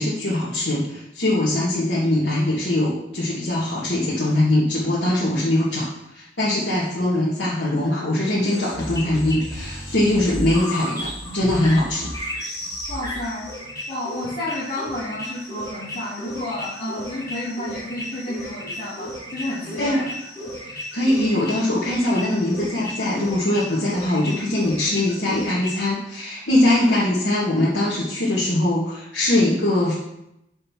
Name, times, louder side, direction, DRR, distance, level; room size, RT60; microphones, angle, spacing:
voice 1, 0.0-5.9 6.1-12.1 19.8-20.0 20.7-30.0, left 1 dB, 80° left, -8 dB, 1.9 m, -22 dB
sound 1, 8.4-25.9, equal, 20° left, 2.3 m, -34 dB
voice 2, 12.9-13.5 13.9-20.1 26.7-27.0, left 1 dB, 45° left, -9 dB, 2.5 m, -31 dB
6.7 x 5.3 x 5.9 m, 0.81 s
head